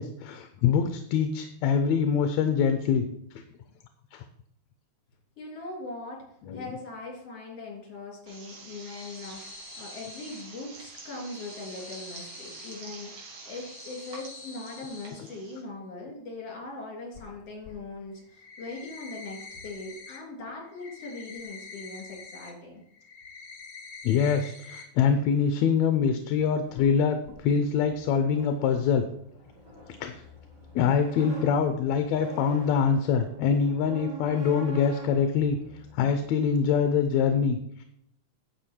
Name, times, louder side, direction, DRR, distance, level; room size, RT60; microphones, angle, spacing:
voice 1, 0.0-3.1 4.1-4.2 6.5-6.6 24.0-29.1 30.0-30.1 30.8-35.6 35.9-37.8, left 6 dB, 75° left, 8 dB, 1.9 m, -24 dB
voice 2, 5.4-6.2 6.5-22.8, left 2 dB, 55° left, 0 dB, 4.2 m, -40 dB
sound 1, 8.3-15.6, right 3 dB, 85° right, 3.9 m, -47 dB
sound 2, 8.7-10.4 11.0-12.7 13.3-15.1 17.1-17.2 17.6-17.7 18.2-20.2 20.5-22.5 22.9-24.8 25.2-25.3 25.7-25.8 26.8-26.9 27.3-27.4, left 4 dB, 40° left, 1.4 m, -46 dB
sound 3, 26.6-36.6, right 2 dB, 45° right, 3.2 m, -45 dB
9.9 x 7.7 x 4.5 m, 0.72 s
omnidirectional pair, 3.4 m